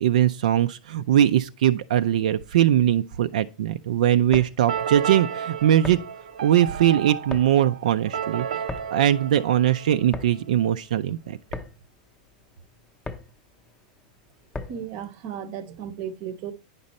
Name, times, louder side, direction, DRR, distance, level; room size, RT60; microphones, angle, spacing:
voice 1, 0.0-6.0 6.4-8.5 8.9-11.4, right 11 dB, 70° right, 0.4 m, -21 dB
sound 1, 4.1-15.0, left 3 dB, 5° left, 0.6 m, -40 dB
sound 2, 4.7-10.4, right 8 dB, 85° right, 0.8 m, -33 dB
voice 2, 14.7-16.5, right 8 dB, 35° right, 0.7 m, -35 dB
9.6 x 5.3 x 4.1 m
supercardioid pair, 170°, 4 cm